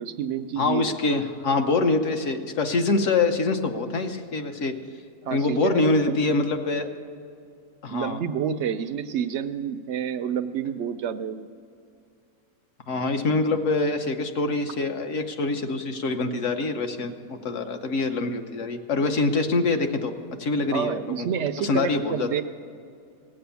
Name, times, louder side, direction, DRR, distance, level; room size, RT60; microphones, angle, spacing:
voice 1, 0.0-0.9 5.2-6.3 7.9-11.5 20.7-22.4, right 8 dB, 70° right, 10 dB, 0.7 m, -29 dB
voice 2, 0.6-4.8 5.3-6.9 7.8-8.2 12.9-20.1 20.4-21.3 21.6-22.3, left 3 dB, 55° left, 6 dB, 1.2 m, -25 dB
18.0 x 7.7 x 6.9 m, 2.4 s
omnidirectional pair, 1.7 m